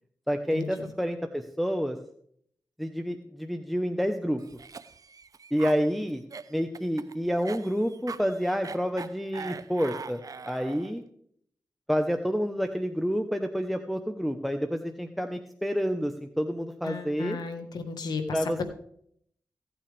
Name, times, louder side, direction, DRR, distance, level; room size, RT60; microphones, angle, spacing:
voice 1, 0.3-2.0 2.8-4.4 5.5-6.2 6.5-11.0 11.9-17.4 18.3-18.6, equal, ahead, 5 dB, 1.0 m, -29 dB
Cough, 4.4-11.0, right 5 dB, 55° right, 0.6 m, -42 dB
voice 2, 16.8-18.6, left 4 dB, 85° left, 7 dB, 1.5 m, -34 dB
16.5 x 8.7 x 3.5 m, 0.66 s
cardioid pair, 40°, 7 cm